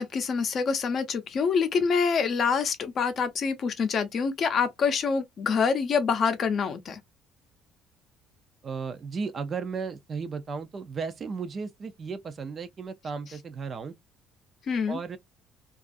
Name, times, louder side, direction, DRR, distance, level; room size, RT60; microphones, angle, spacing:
voice 1, 0.0-7.0 14.7-15.0, left 5 dB, 45° left, 0.5 m, -26 dB
voice 2, 8.6-14.0 14.9-15.2, right 5 dB, 35° right, 0.4 m, -35 dB
2.4 x 2.3 x 2.4 m
cardioid pair, 130°, 0 cm